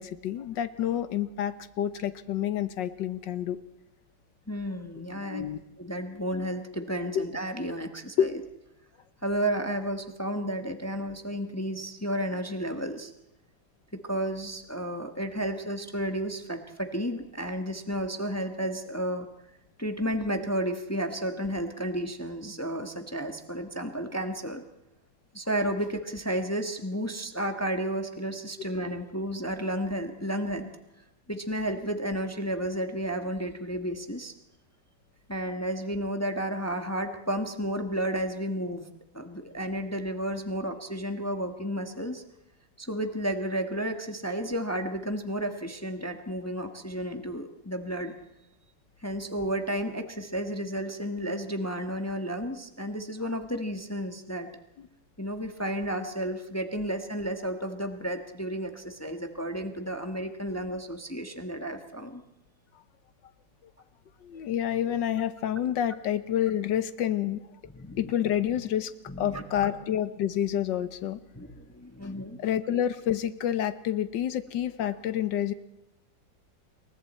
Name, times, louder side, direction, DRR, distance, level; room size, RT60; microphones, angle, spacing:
voice 1, 0.0-3.6 5.2-5.6 7.1-7.3 8.2-8.3 54.8-54.9 64.2-67.4 68.0-71.2 72.4-75.5, left 10 dB, 90° left, 13 dB, 1.7 m, -28 dB
voice 2, 4.5-5.5 5.8-8.4 9.2-13.1 13.9-19.3 19.8-24.6 25.3-30.7 31.3-34.3 35.3-38.8 39.1-42.2 42.8-48.1 49.0-54.5 55.2-62.2 67.7-68.0 69.1-69.7 71.3-72.4, right 1 dB, 10° left, 6 dB, 1.3 m, -32 dB
27.5 x 23.0 x 4.4 m, 0.89 s
omnidirectional pair, 1.9 m